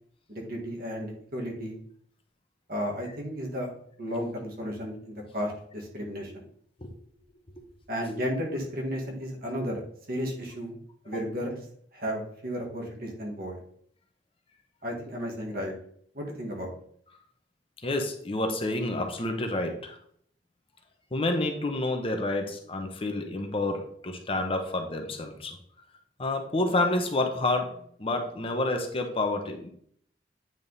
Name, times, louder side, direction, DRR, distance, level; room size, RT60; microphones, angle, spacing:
voice 1, 0.3-1.8 2.7-3.7 4.0-6.4 7.9-9.8 10.1-10.8 11.1-11.6 11.9-13.6 14.8-15.7 16.1-16.7, equal, 55° right, -1 dB, 1.9 m, -33 dB
voice 2, 17.8-20.0 21.1-25.6 26.2-29.7, left 2 dB, 30° left, 4 dB, 0.9 m, -29 dB
9.0 x 3.6 x 4.0 m, 0.63 s
head